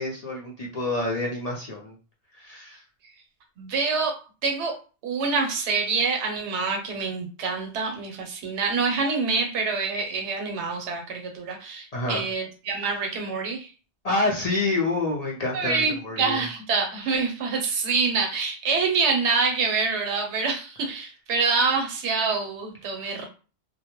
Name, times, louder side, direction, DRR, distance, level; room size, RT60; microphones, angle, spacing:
voice 1, 0.0-2.0 2.3-2.8 11.9-12.2 12.7-12.9 14.0-16.4, left 2 dB, 50° left, -3 dB, 0.5 m, -28 dB
voice 2, 3.6-4.7 5.0-13.7 15.5-23.3, right 4 dB, 85° right, 3 dB, 1.0 m, -26 dB
2.2 x 2.0 x 2.9 m, 0.34 s
omnidirectional pair, 1.1 m